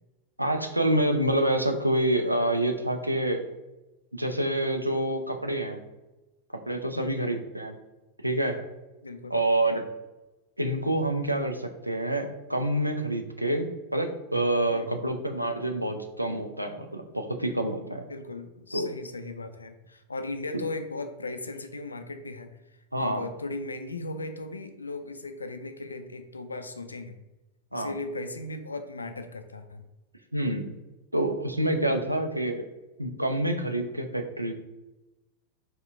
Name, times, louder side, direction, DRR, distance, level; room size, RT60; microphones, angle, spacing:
voice 1, 0.4-3.4 4.1-5.8 6.7-7.8 8.2-8.6 9.3-9.8 10.6-18.0 18.7-18.9 22.9-23.2 27.7-27.9 30.3-30.7 31.1-32.6 33.0-34.5, right 1 dB, 85° right, 5 dB, 0.4 m, -27 dB
voice 2, 6.9-7.5 9.0-9.3 9.6-9.8 14.7-15.0 17.9-22.5 23.0-27.2 27.7-29.8 31.9-32.0, left 2 dB, 80° left, 8 dB, 0.3 m, -37 dB
4.2 x 2.2 x 3.5 m, 1.0 s
figure-of-eight pair, 90°, 0 cm